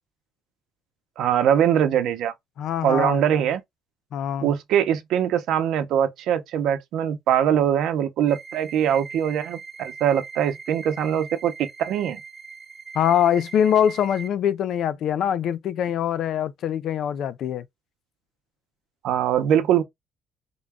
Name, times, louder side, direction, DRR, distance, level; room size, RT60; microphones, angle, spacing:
voice 1, 1.2-2.3 2.8-3.6 4.4-12.2 19.0-19.8, right 9 dB, 75° right, 0.7 m, -22 dB
voice 2, 2.6-3.2 4.1-4.5 12.9-17.6, left 9 dB, 60° left, 0.4 m, -23 dB
sound 1, 8.3-14.3, right 5 dB, 20° right, 0.8 m, -40 dB
3.8 x 2.3 x 3.5 m
cardioid pair, 135°, 0 cm